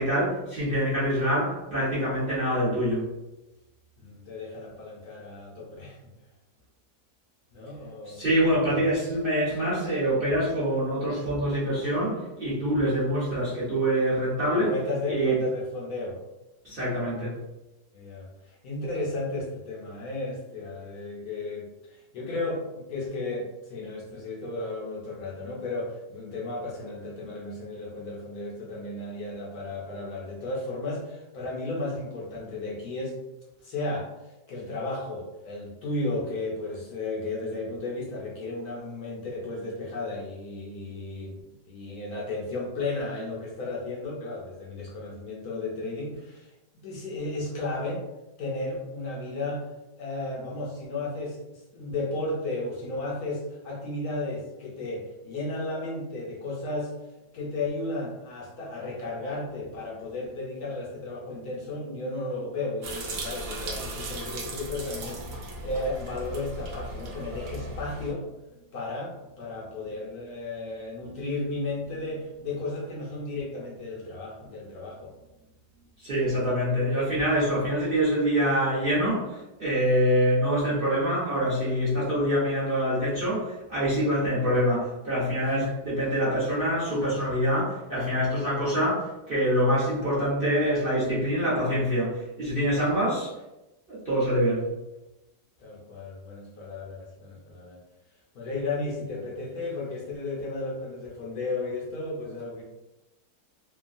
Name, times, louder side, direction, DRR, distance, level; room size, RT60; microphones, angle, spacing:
voice 1, 0.0-3.0 8.1-14.7 15.1-15.4 16.6-17.3 76.0-93.3 93.9-94.7, equal, 45° right, -10 dB, 0.8 m, -25 dB
voice 2, 4.0-6.1 7.5-8.2 8.6-8.8 14.5-16.2 17.9-33.1 33.6-48.0 48.4-49.7 50.0-56.9 57.3-68.3 68.7-75.1 85.4-86.1 95.6-97.8 98.3-102.6, left 2 dB, 70° left, -3 dB, 1.0 m, -34 dB
sound 1, 62.8-68.1, right 1 dB, 70° right, 1.1 m, -36 dB
3.0 x 2.2 x 2.5 m, 0.99 s
omnidirectional pair, 2.0 m